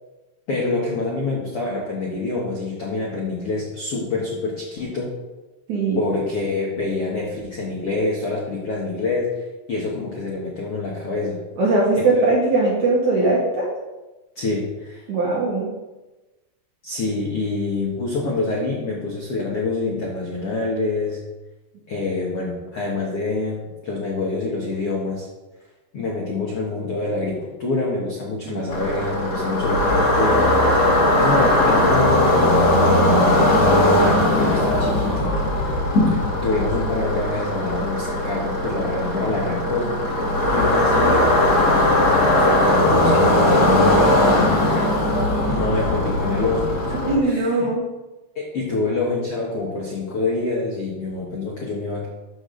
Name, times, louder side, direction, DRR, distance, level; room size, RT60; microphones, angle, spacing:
voice 1, 0.5-5.1 5.9-11.4 11.9-12.3 14.3-15.0 16.8-21.2 21.9-25.3 25.9-35.3 36.4-40.2 40.5-41.6 42.1-44.4 45.5-46.7 47.2-47.7 48.3-52.1, left 3 dB, 60° left, -4 dB, 1.5 m, -26 dB
voice 2, 5.7-6.0 11.6-13.7 15.1-15.7 28.4-28.6 47.0-47.9, right 2 dB, 55° right, -3 dB, 2.4 m, -20 dB
sound 1, 28.7-47.2, left 1 dB, 45° left, 2.5 m, -19 dB
13.0 x 7.4 x 4.0 m, 1.1 s
omnidirectional pair, 5.3 m